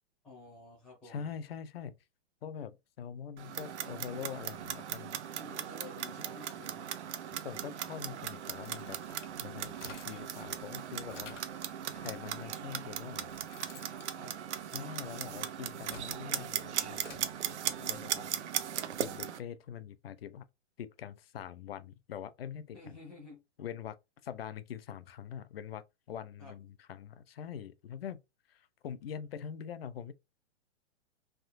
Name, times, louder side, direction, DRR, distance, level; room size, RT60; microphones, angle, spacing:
voice 1, 0.2-1.3 5.3-6.9 14.2-14.3 17.8-18.5 22.7-23.4 26.4-26.5, left 2 dB, ahead, 0.5 m, -51 dB
voice 2, 1.0-2.0 2.4-5.2 7.4-9.0 9.4-11.4 11.9-13.3 14.7-18.3 19.0-20.5 20.8-22.9 23.6-24.0 24.2-28.2 28.5-30.1, left 8 dB, 55° left, 0.5 m, -44 dB
Clock, 3.4-19.4, right 9 dB, 70° right, 0.6 m, -38 dB
sound 1, 8.5-10.4 10.8-11.6 12.5-12.6 13.0-15.2 15.6-17.3, left 4 dB, 80° left, 1.1 m, -52 dB
3.5 x 2.6 x 2.4 m
hypercardioid pair, 180°, 36 cm